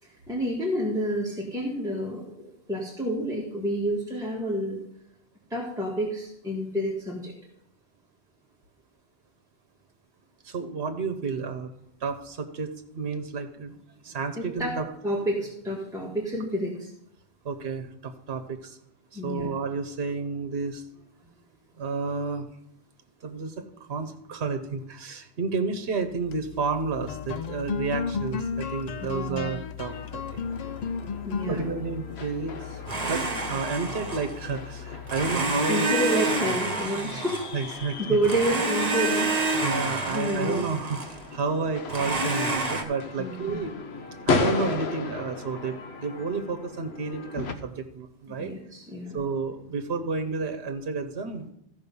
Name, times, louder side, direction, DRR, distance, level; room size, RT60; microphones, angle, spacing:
voice 1, 0.0-4.8 5.5-7.3 14.1-14.8 15.0-16.9 19.1-19.5 29.0-29.5 31.3-31.7 35.7-39.6 40.1-40.6 43.2-43.6 48.3-49.2, right 1 dB, 5° right, -4 dB, 1.6 m, -29 dB
voice 2, 10.4-11.7 12.0-13.8 14.0-14.9 17.4-18.8 19.1-20.8 21.8-22.5 23.2-30.5 31.5-32.8 33.1-36.2 37.5-38.2 39.6-41.0 41.3-43.8 44.3-48.5 49.1-51.5, right 4 dB, 70° right, 6 dB, 1.2 m, -31 dB
sound 1, 26.1-35.7, left 6 dB, 55° left, 0.5 m, -35 dB
sound 2, 29.9-47.5, left 4 dB, 75° left, 1.1 m, -36 dB
Domestic sounds home sounds, 32.9-34.5 35.1-37.8 38.2-41.3 41.9-42.8, right 2 dB, 40° right, 1.3 m, -28 dB
14.0 x 5.3 x 5.4 m, 0.78 s
omnidirectional pair, 1.1 m